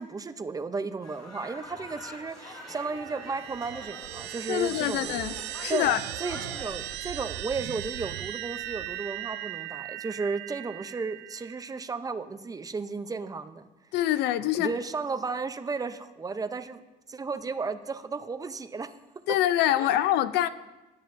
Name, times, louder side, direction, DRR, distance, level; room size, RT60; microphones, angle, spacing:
voice 1, 0.0-5.2 5.7-13.7 14.6-16.8 17.1-18.9 19.8-19.9, right 4 dB, 20° right, 0.5 m, -34 dB
sound 1, 1.0-7.0, left 1 dB, 25° left, 3.7 m, -45 dB
sound 2, 2.5-11.8, right 15 dB, 90° right, 0.4 m, -38 dB
voice 2, 4.5-5.3 5.6-6.0 13.9-14.7 19.3-20.5, left 12 dB, 85° left, 0.5 m, -25 dB
19.0 x 7.3 x 2.6 m
cardioid pair, 110°, 17 cm